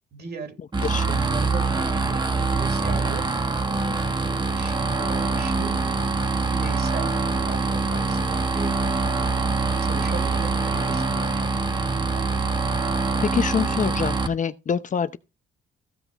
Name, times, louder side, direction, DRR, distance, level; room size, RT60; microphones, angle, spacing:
voice 1, 0.1-2.3 2.5-4.2 4.5-5.9 6.5-12.6, right 4 dB, 55° right, 3.9 m, -39 dB
sound 1, 0.7-14.3, right 3 dB, 20° right, 1.3 m, -24 dB
voice 2, 0.8-1.2 13.2-15.2, left 7 dB, 40° left, 0.7 m, -25 dB
15.0 x 5.7 x 4.1 m
cardioid pair, 90°, 20 cm